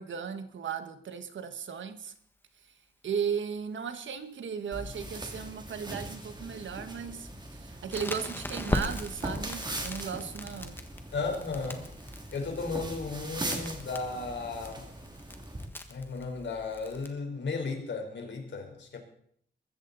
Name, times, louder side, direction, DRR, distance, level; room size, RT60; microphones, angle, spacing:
voice 1, 0.0-2.1 3.0-10.7, right 7 dB, 85° right, 10 dB, 1.5 m, -36 dB
sound 1, 4.7-15.7, right 1 dB, 25° right, 2.5 m, -40 dB
Crackle, 7.9-17.1, left 1 dB, 10° left, 1.4 m, -40 dB
voice 2, 11.1-11.8 12.3-14.9 15.9-19.0, left 4 dB, 75° left, 4 dB, 3.9 m, -35 dB
21.5 x 15.0 x 4.0 m, 0.64 s
wide cardioid pair, 155°, 19 cm